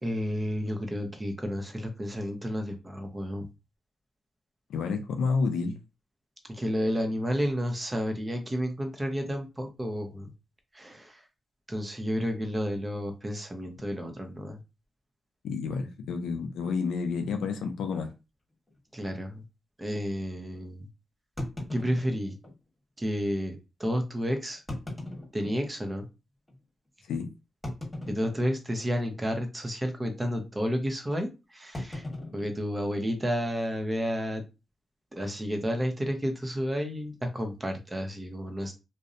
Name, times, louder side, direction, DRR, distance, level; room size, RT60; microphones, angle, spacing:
voice 1, 0.0-3.5 6.5-10.3 10.7-11.2 11.7-14.6 18.9-19.4 19.8-20.8 21.7-22.4 23.0-24.6 25.3-26.1 28.1-32.1 32.3-34.4 35.1-38.7, equal, 25° right, 4 dB, 0.7 m, -31 dB
voice 2, 4.7-5.8 15.4-18.1 27.1-27.3, left 5 dB, 85° left, 5 dB, 0.4 m, -30 dB
sound 1, 16.6-16.8 17.6-17.7 18.0-18.1 18.7-18.8 21.4-22.6 23.4-23.5 24.5-26.0 26.5-26.6 27.6-28.7 29.0-29.4 29.6-29.9 31.7-33.4, left 1 dB, 15° left, 1.3 m, -39 dB
2.5 x 2.0 x 2.5 m, 0.28 s
supercardioid pair, 50°, 0 cm